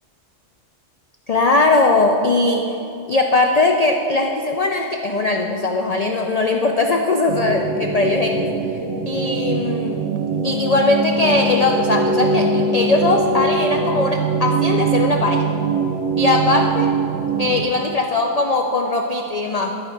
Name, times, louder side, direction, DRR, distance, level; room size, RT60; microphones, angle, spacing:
voice 1, 1.3-2.7 3.1-8.5 9.1-10.0 10.4-15.5 16.2-16.9 17.4-19.7, left 2 dB, 75° left, 3 dB, 0.3 m, -19 dB
sound 1, 7.3-17.6, right 4 dB, 75° right, 0.9 m, -22 dB
12.0 x 4.4 x 4.5 m, 2.8 s
omnidirectional pair, 1.3 m